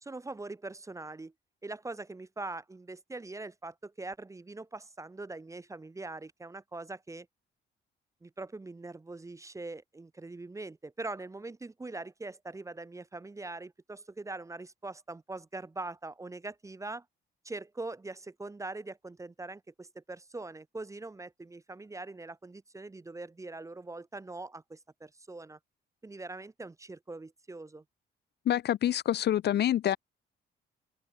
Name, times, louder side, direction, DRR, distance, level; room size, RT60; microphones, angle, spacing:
voice 1, 0.0-1.3 1.6-7.3 8.2-17.0 17.4-25.6 26.0-27.8, right 2 dB, 15° right, 0.6 m, -42 dB
voice 2, 28.5-30.0, left 11 dB, 55° left, 0.5 m, -26 dB
cardioid pair, 90°, 20 cm